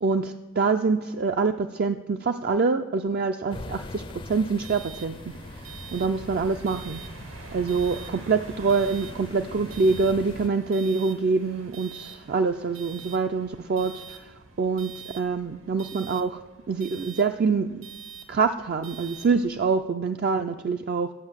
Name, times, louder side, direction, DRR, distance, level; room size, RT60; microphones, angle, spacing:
voice 1, 0.0-5.1 5.6-7.0 7.5-14.3 14.6-16.4 16.7-17.9 18.3-21.1, right 4 dB, 50° right, 6 dB, 0.4 m, -25 dB
sound 1, 3.5-10.5, left 2 dB, 25° left, 0.4 m, -42 dB
sound 2, 4.3-19.8, right 5 dB, 80° right, 1.4 m, -44 dB
10.5 x 8.3 x 7.2 m, 1.2 s
head